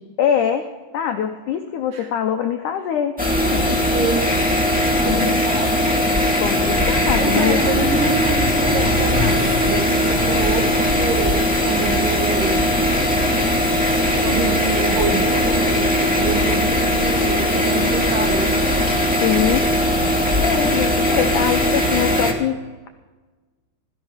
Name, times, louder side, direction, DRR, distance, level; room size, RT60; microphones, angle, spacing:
voice 1, 0.2-3.2 3.5-3.6 5.0-5.4 6.4-7.6 19.2-19.7 20.4-22.9, left 9 dB, 85° left, 5 dB, 1.8 m, -23 dB
sound 1, 3.2-22.3, left 1 dB, 10° right, 0.6 m, -19 dB
voice 2, 3.5-4.3 5.0-6.0 7.1-12.7 14.2-18.6, right 4 dB, 60° right, 4 dB, 3.0 m, -26 dB
16.5 x 14.0 x 5.0 m, 1.3 s
omnidirectional pair, 4.7 m